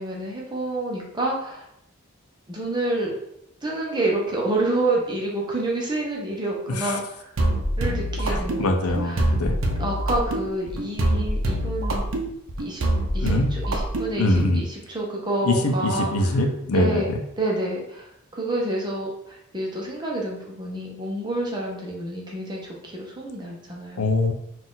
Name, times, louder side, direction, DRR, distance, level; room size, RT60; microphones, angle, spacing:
voice 1, 0.0-1.7 2.5-3.1 3.6-7.3 7.8-9.3 9.8-12.0 12.6-12.8 13.1-16.4 16.7-24.0, right 2 dB, 20° right, -2 dB, 0.8 m, -28 dB
voice 2, 6.7-7.0 8.3-9.6 13.2-13.5 14.2-14.6 15.4-17.2 24.0-24.3, left 2 dB, 80° left, 5 dB, 0.6 m, -23 dB
sound 1, 7.4-14.5, right 1 dB, 65° right, 0.6 m, -25 dB
4.0 x 2.5 x 3.8 m, 0.78 s
head